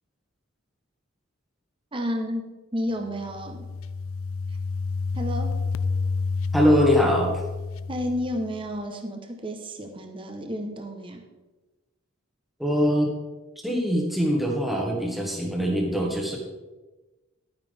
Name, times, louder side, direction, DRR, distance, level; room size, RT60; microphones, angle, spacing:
voice 1, 1.9-2.4 2.7-3.7 5.1-5.6 7.9-11.3, equal, 25° right, 4 dB, 1.0 m, -31 dB
sound 1, 3.1-8.7, left 4 dB, 75° left, 0.4 m, -30 dB
voice 2, 6.5-7.3 12.6-13.1 13.6-16.4, equal, ahead, -2 dB, 1.5 m, -22 dB
11.5 x 9.0 x 3.5 m, 1.2 s
head